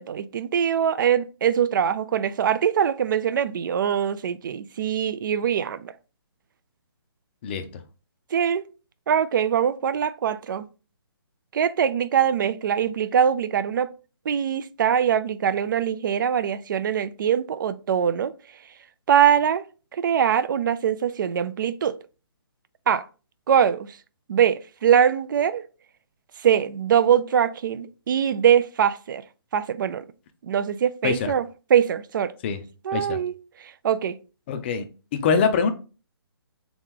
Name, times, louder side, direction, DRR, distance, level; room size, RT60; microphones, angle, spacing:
voice 1, 0.0-5.9 8.3-8.6 9.1-10.7 11.5-13.9 14.3-18.3 19.1-19.6 19.9-21.9 22.9-23.0 23.5-23.9 24.3-25.6 26.4-29.2 29.5-30.0 30.5-31.5 31.7-32.3 32.8-33.3 33.8-34.2, right 8 dB, 50° right, 0.4 m, -22 dB
voice 2, 34.5-34.8 35.1-35.7, left 6 dB, 25° left, 0.4 m, -23 dB
3.6 x 3.0 x 3.6 m
hypercardioid pair, 155°, 13 cm